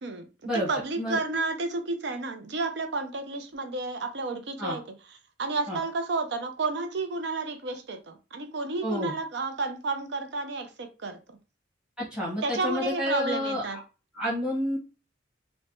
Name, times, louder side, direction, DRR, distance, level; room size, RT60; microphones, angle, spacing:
voice 1, 0.5-4.8 5.4-11.2 12.4-13.8, right 3 dB, 60° right, 0.5 m, -31 dB
voice 2, 8.8-9.1 12.0-13.8 14.1-14.8, equal, 5° right, 1.0 m, -29 dB
3.1 x 2.1 x 2.6 m
head